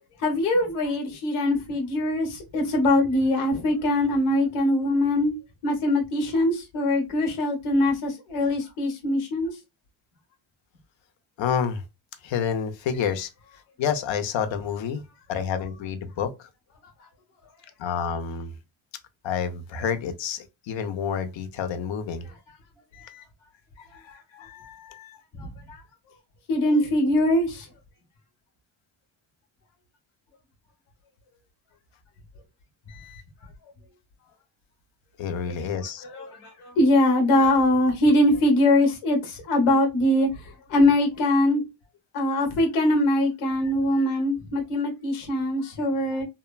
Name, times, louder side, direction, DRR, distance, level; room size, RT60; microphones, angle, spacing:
voice 1, 0.2-5.4 5.6-9.6 25.4-25.8 26.5-27.7 36.1-41.6 42.1-46.2, left 1 dB, 90° left, 1.1 m, -22 dB
voice 2, 11.4-11.8 12.2-13.3 13.8-15.0 15.3-16.5 17.8-18.5 19.2-22.3 22.9-23.2 23.8-25.2 32.9-33.2 35.2-36.0 43.6-44.1, left 7 dB, 65° left, 0.7 m, -29 dB
2.9 x 2.1 x 2.3 m
cardioid pair, 95°, 49 cm